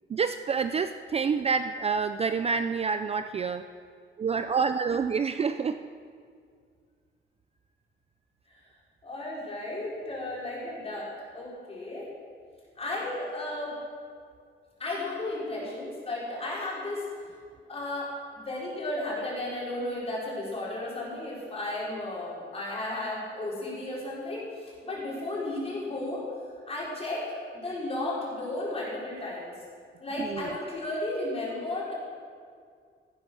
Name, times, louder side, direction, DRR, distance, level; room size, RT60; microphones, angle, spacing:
voice 1, 0.1-3.6 4.2-5.8 30.2-30.5, right 5 dB, 30° right, 9 dB, 0.4 m, -28 dB
voice 2, 9.0-11.1 11.3-12.1 12.8-13.7 14.8-17.0 17.7-26.2 26.7-27.2 27.6-29.5 30.0-31.9, left 1 dB, 30° left, -6 dB, 4.6 m, -34 dB
16.5 x 9.7 x 6.2 m, 2.1 s
wide cardioid pair, 160°, 20 cm